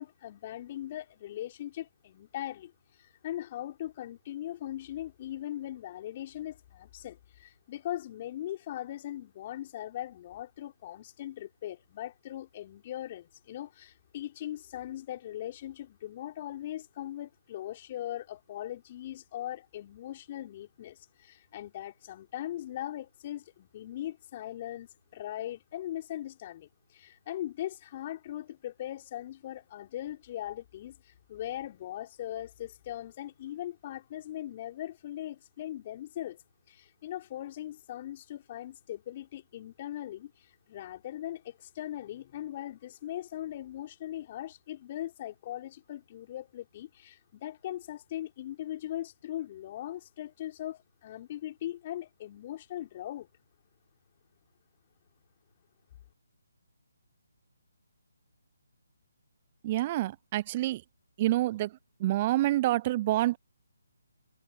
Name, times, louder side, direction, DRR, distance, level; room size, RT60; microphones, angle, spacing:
voice 1, 0.0-2.7 3.0-36.4 36.7-53.3, left 13 dB, 35° left, 4.2 m, -40 dB
voice 2, 59.6-60.8 61.2-61.7 62.0-63.4, right 15 dB, 30° right, 0.5 m, -27 dB
figure-of-eight pair, 150°, 0 cm